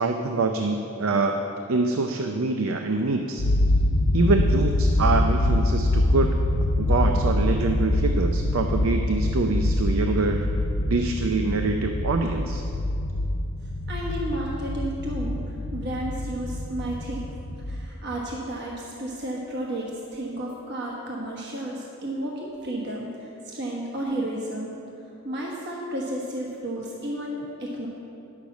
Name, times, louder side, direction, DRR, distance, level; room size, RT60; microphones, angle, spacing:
voice 1, 0.0-3.5 4.1-6.4 6.8-10.5 10.8-12.6, right 3 dB, 70° right, 4 dB, 0.5 m, -25 dB
sound 1, 3.4-17.9, left 1 dB, 75° left, 0.6 m, -25 dB
voice 2, 13.9-17.3 17.7-24.7 25.2-27.9, right 1 dB, 50° right, -3 dB, 1.3 m, -32 dB
10.5 x 6.6 x 7.1 m, 2.7 s
head